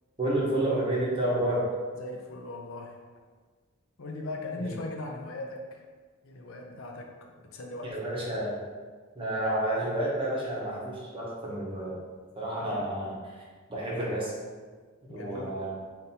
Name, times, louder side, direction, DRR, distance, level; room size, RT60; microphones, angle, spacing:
voice 1, 0.2-1.7 4.6-4.7 7.8-8.5 9.1-12.0 12.4-13.4 13.7-14.3 15.1-15.7, right 1 dB, 25° right, -5 dB, 0.9 m, -30 dB
voice 2, 2.0-3.0 4.0-5.9 6.2-8.0 12.6-12.9 15.1-15.6, left 2 dB, 65° left, 2 dB, 0.5 m, -39 dB
5.6 x 2.6 x 2.8 m, 1.5 s
head